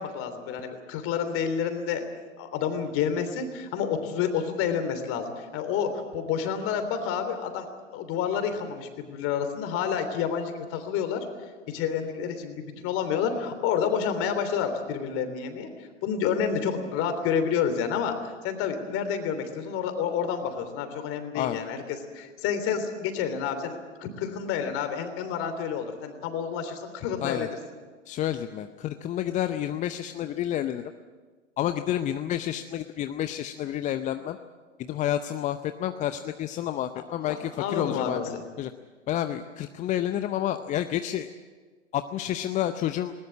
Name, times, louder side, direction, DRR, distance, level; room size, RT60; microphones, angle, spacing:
voice 1, 0.0-2.0 2.4-7.7 7.9-11.3 11.7-27.6 37.3-38.5, left 7 dB, 35° left, 8 dB, 3.3 m, -29 dB
voice 2, 28.1-30.9 31.6-34.4 34.8-38.2 38.6-38.7 39.1-41.3 41.9-43.1, left 11 dB, 20° left, 10 dB, 0.6 m, -29 dB
20.0 x 19.5 x 8.5 m, 1.4 s
figure-of-eight pair, 100°, 37 cm